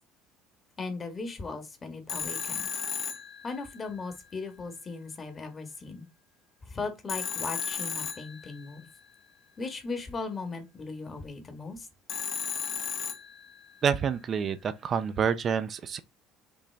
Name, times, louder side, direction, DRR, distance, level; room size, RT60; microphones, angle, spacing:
voice 1, 0.8-2.7 3.4-6.1 6.6-8.9 9.6-11.9, left 4 dB, 35° left, 1.4 m, -38 dB
Telephone, 2.1-4.0 7.1-8.9 12.1-13.8, left 7 dB, 55° left, 0.9 m, -35 dB
voice 2, 13.8-16.0, right 7 dB, 45° right, 0.5 m, -28 dB
5.2 x 2.6 x 3.4 m
supercardioid pair, 80°, 0 cm